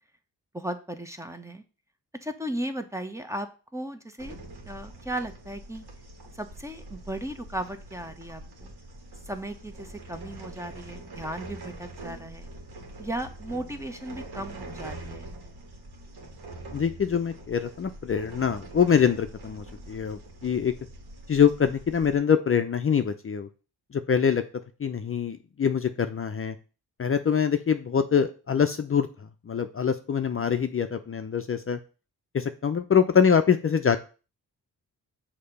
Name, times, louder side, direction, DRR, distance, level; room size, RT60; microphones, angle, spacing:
voice 1, 0.5-1.6 2.2-4.4 4.6-5.8 6.3-8.7 9.3-12.5 13.0-15.3, right 1 dB, 10° right, 7 dB, 0.9 m, -36 dB
sound 1, 4.2-22.2, right 2 dB, 75° right, 1.6 m, -44 dB
voice 2, 16.7-20.7 21.3-23.5 23.9-24.4 24.8-26.5 27.0-29.1 29.5-31.8 32.3-34.0, left 7 dB, 35° left, 8 dB, 0.6 m, -24 dB
6.5 x 2.9 x 5.3 m, 0.35 s
cardioid pair, 60°, 38 cm